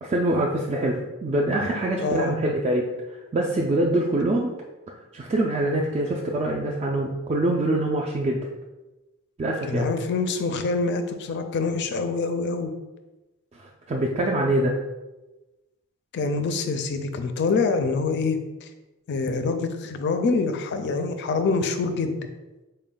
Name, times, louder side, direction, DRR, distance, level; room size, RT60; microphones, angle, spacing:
voice 1, 0.0-2.9 3.3-4.5 5.1-8.4 9.4-9.9 13.6-14.8, right 1 dB, 30° right, -2 dB, 0.3 m, -24 dB
voice 2, 2.0-2.4 9.7-12.7 16.1-18.7 19.1-22.1, left 4 dB, 55° left, 8 dB, 0.4 m, -25 dB
4.1 x 2.2 x 3.7 m, 1.1 s
head